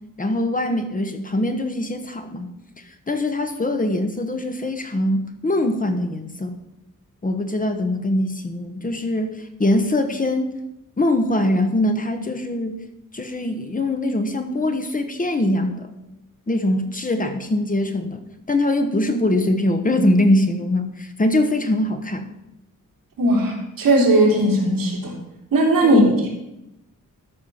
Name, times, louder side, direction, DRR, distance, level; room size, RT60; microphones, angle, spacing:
voice 1, 0.2-2.5 3.1-6.6 7.2-10.5 11.0-12.8 13.1-16.0 16.5-18.2 18.5-22.3 25.8-26.1, left 1 dB, 25° left, 6 dB, 1.0 m, -22 dB
voice 2, 23.2-25.1 25.5-26.1, right 1 dB, 90° right, -2 dB, 3.4 m, -17 dB
13.5 x 6.3 x 5.6 m, 0.89 s
wide cardioid pair, 160°, 33 cm